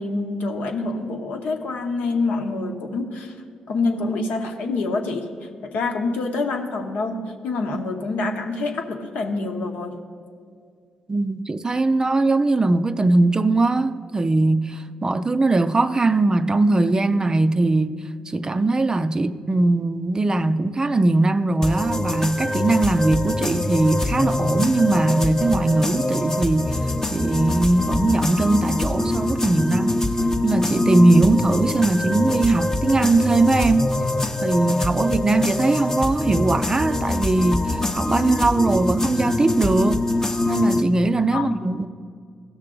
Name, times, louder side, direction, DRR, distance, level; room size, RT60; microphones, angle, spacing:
voice 1, 0.0-3.3 3.7-10.0 41.3-41.6, left 3 dB, 75° left, 1.0 m, -26 dB
voice 2, 11.1-18.0 18.3-30.0 30.4-33.9 34.4-40.0 40.5-41.9, right 2 dB, 25° right, 0.4 m, -20 dB
sound 1, 21.6-40.8, left 2 dB, 20° left, 0.7 m, -24 dB
16.0 x 6.5 x 3.7 m
supercardioid pair, 55°, 3 cm